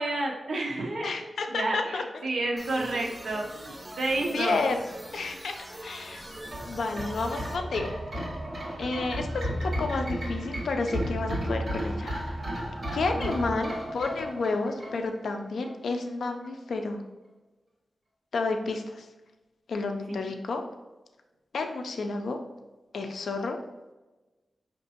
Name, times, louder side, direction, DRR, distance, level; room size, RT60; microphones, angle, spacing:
voice 1, 0.0-1.2 1.5-4.6 13.1-13.4 20.1-20.3, right 2 dB, 60° right, 0 dB, 0.7 m, -30 dB
voice 2, 1.0-2.0 4.3-4.8 5.1-5.6 5.8-6.4 6.6-7.9 8.8-12.1 12.9-17.0 18.3-19.1 19.7-20.6 21.5-22.4 22.9-23.6, left 3 dB, 85° left, 5 dB, 0.4 m, -31 dB
sound 1, 2.6-7.6, right 1 dB, 15° right, 0.3 m, -43 dB
sound 2, 6.4-15.3 15.6-15.7, equal, 35° right, 1.4 m, -33 dB
5.3 x 2.9 x 2.8 m, 1.1 s
wide cardioid pair, 170°, 0 cm